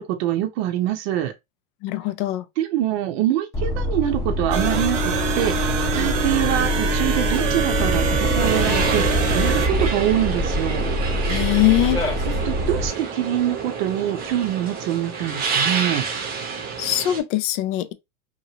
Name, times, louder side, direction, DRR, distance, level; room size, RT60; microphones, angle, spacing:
voice 1, 0.0-1.3 2.6-11.0 12.2-16.1, right 12 dB, 55° right, 0.7 m, -25 dB
voice 2, 1.8-2.4 11.3-12.0 16.8-17.9, left 15 dB, 45° left, 0.4 m, -21 dB
sound 1, 3.5-12.9, equal, 10° left, 0.7 m, -25 dB
sound 2, 4.5-9.7, right 4 dB, 80° right, 0.9 m, -24 dB
sound 3, 8.4-17.2, right 5 dB, 25° right, 0.8 m, -28 dB
2.8 x 2.5 x 2.8 m
supercardioid pair, 140°, 36 cm